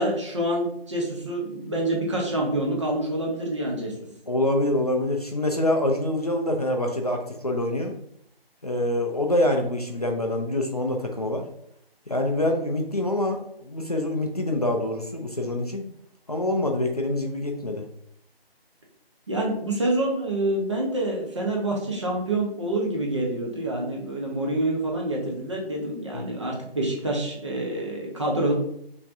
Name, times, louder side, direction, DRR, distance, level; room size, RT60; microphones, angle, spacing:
voice 1, 0.0-3.9 19.3-28.5, right 1 dB, 30° right, -2 dB, 0.9 m, -27 dB
voice 2, 4.3-7.9 8.6-11.5 12.1-15.9 16.3-17.9 26.1-26.2, left 1 dB, 40° left, 2 dB, 0.5 m, -25 dB
5.9 x 2.9 x 2.6 m, 0.72 s
figure-of-eight pair, 155°, 31 cm